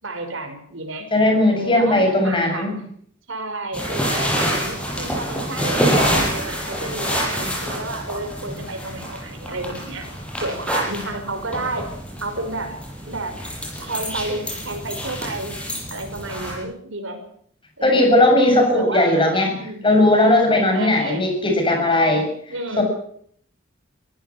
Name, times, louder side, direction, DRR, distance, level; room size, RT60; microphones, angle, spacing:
voice 1, 0.0-1.1 1.5-2.8 3.3-10.1 10.4-11.9 12.2-12.8 13.1-13.4 13.8-15.6 15.9-17.2 17.8-18.3 18.7-19.2 19.5-19.9 20.7-21.3 22.5-22.8, right 2 dB, 70° right, 5 dB, 5.6 m, -31 dB
voice 2, 1.1-2.8 17.8-19.5 19.8-22.3 22.8-22.9, left 1 dB, 25° left, 3 dB, 7.3 m, -17 dB
sound 1, 3.7-16.6, equal, 5° left, 7.8 m, -26 dB
24.0 x 16.0 x 7.3 m, 0.64 s
head